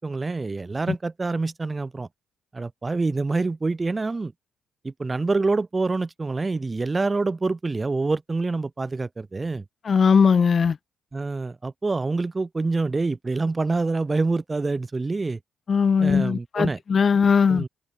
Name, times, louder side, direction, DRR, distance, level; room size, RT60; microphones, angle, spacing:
voice 1, 0.0-2.1 2.5-4.3 4.8-9.6 11.1-15.4 16.0-16.8 17.5-17.7, right 3 dB, 25° right, 4.3 m, -26 dB
voice 2, 9.9-10.7 15.7-17.6, left 6 dB, 45° left, 0.7 m, -19 dB
cardioid pair, 90°, 0 cm